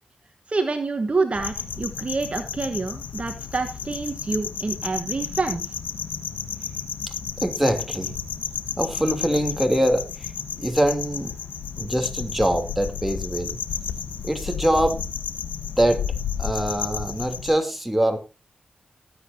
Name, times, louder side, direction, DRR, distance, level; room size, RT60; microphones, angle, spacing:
voice 1, 0.5-5.7, right 3 dB, 45° right, 6 dB, 1.3 m, -27 dB
sound 1, 1.3-17.5, left 7 dB, 85° left, 1.1 m, -32 dB
voice 2, 7.4-8.1 8.8-10.3 10.6-11.4 11.8-13.6 14.2-15.1 15.8-16.1 16.4-18.2, right 1 dB, 5° right, 5 dB, 3.1 m, -23 dB
19.0 x 8.4 x 2.8 m, 0.29 s
supercardioid pair, 40°, 3 cm